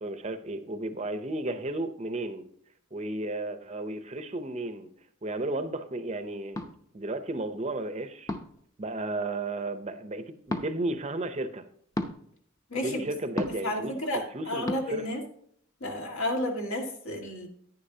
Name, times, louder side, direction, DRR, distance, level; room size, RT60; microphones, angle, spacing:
voice 1, 0.0-2.4 2.9-4.9 5.2-6.7 6.9-8.3 8.8-11.6 12.8-13.9 14.3-15.0, right 2 dB, 30° right, 9 dB, 0.6 m, -33 dB
sound 1, 6.5-6.7 8.3-8.6 10.5-10.7 11.9-12.2 13.4-13.7 14.7-14.8, left 1 dB, 15° left, 0.7 m, -31 dB
voice 2, 12.7-13.1 13.6-15.2 15.8-17.5, left 1 dB, 70° left, 2 dB, 1.8 m, -31 dB
10.0 x 9.9 x 2.8 m, 0.66 s
head